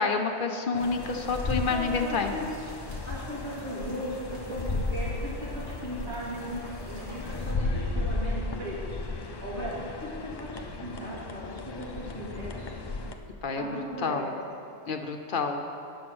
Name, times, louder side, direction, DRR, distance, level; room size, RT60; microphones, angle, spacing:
voice 1, 0.0-2.3 13.4-14.3 14.9-15.6, left 4 dB, 55° left, 5 dB, 0.8 m, -29 dB
sound 1, 0.7-13.2, left 2 dB, 40° left, 0.4 m, -35 dB
sound 2, 0.8-7.5, equal, 50° right, 1.6 m, -46 dB
voice 2, 1.5-2.7 3.0-12.8 13.6-14.2, equal, 90° right, -7 dB, 3.0 m, -38 dB
9.3 x 6.9 x 6.0 m, 2.6 s
omnidirectional pair, 1.1 m